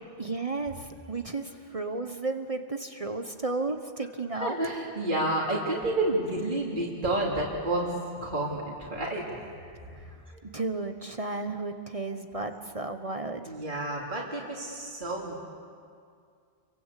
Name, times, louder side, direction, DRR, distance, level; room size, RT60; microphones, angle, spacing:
voice 1, 0.2-4.6 10.4-13.5, right 3 dB, 35° right, 7 dB, 1.2 m, -33 dB
voice 2, 4.3-9.4 9.8-9.9 12.1-12.2 13.4-15.4, right 1 dB, 50° right, -3 dB, 3.3 m, -30 dB
29.5 x 24.0 x 8.4 m, 2.2 s
omnidirectional pair, 1.1 m